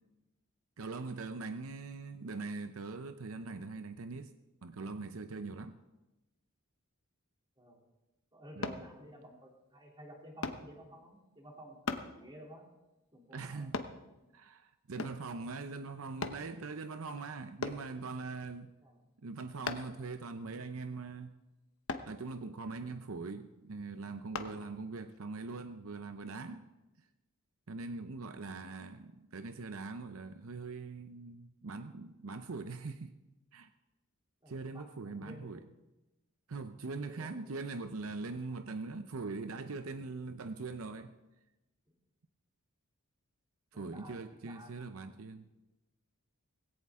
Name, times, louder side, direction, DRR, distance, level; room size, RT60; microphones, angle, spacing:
voice 1, 0.8-4.3 4.6-5.8 8.6-8.8 13.3-13.8 14.3-18.7 19.2-21.3 22.1-26.7 27.0-27.1 27.7-33.1 33.5-33.7 34.5-35.6 36.5-41.1 43.7-45.5, right 3 dB, 70° right, 9 dB, 0.6 m, -42 dB
voice 2, 8.3-12.7 13.1-13.8 18.8-19.0 34.4-35.7 37.0-37.3 41.9-42.0 43.7-44.7, equal, 20° right, -1 dB, 3.0 m, -53 dB
sound 1, 8.6-8.9 10.4-10.7 11.9-12.1 13.7-14.0 15.0-15.3 16.2-16.4 17.6-17.9 19.7-20.0 21.9-22.1 24.3-24.5 25.1-25.2, left 4 dB, 65° left, 1.0 m, -37 dB
18.5 x 16.5 x 3.7 m, 1.0 s
head